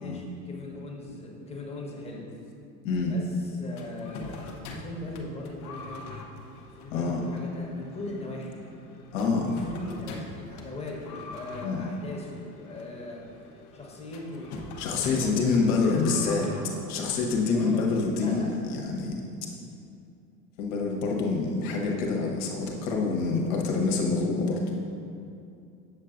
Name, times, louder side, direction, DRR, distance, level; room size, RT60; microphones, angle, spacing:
voice 1, 0.0-2.3 3.1-6.1 6.7-8.6 9.4-13.2 13.7-14.5 14.9-15.8 16.1-17.1 17.5-18.5, left 2 dB, 10° left, -3 dB, 1.3 m, -40 dB
voice 2, 2.8-3.1 6.9-7.2 9.1-9.6 11.6-11.8 14.8-16.5 16.9-19.2 20.6-24.6, left 4 dB, 55° left, -1 dB, 1.2 m, -26 dB
sound 1, 3.7-18.4, left 3 dB, 35° left, 0.8 m, -44 dB
8.2 x 6.6 x 2.6 m, 2.6 s
figure-of-eight pair, 80°, 49 cm